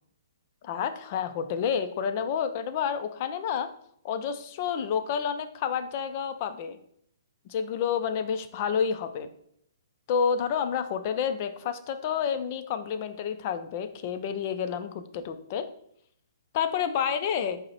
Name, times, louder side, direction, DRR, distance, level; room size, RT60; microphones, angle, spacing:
voice 1, 0.6-3.7 4.0-6.8 7.5-9.3 10.1-15.7 16.5-17.6, left 7 dB, 30° left, 9 dB, 0.3 m, -29 dB
5.1 x 2.0 x 4.2 m, 0.69 s
hypercardioid pair, 170°, 2 cm